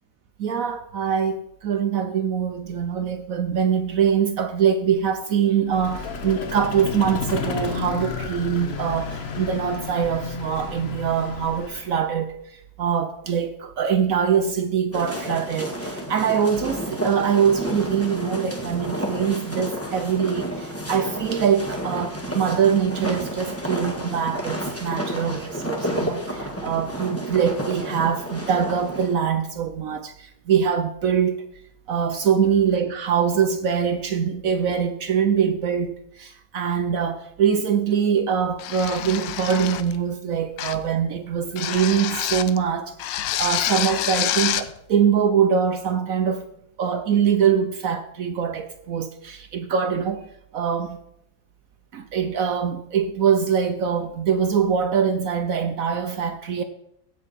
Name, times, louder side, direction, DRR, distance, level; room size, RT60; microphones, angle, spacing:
voice 1, 0.4-31.4 31.9-46.5 46.8-50.3 50.5-51.0 51.9-56.6, right 7 dB, 75° right, 0.8 m, -23 dB
Vehicle, 5.7-12.1, left 5 dB, 50° left, 0.8 m, -32 dB
sound 1, 14.9-29.2, equal, 10° left, 1.3 m, -31 dB
sound 2, 38.6-40.0 40.6-40.9 41.6-42.6 43.0-44.7, left 12 dB, 75° left, 1.2 m, -27 dB
16.0 x 6.0 x 4.1 m
omnidirectional pair, 2.1 m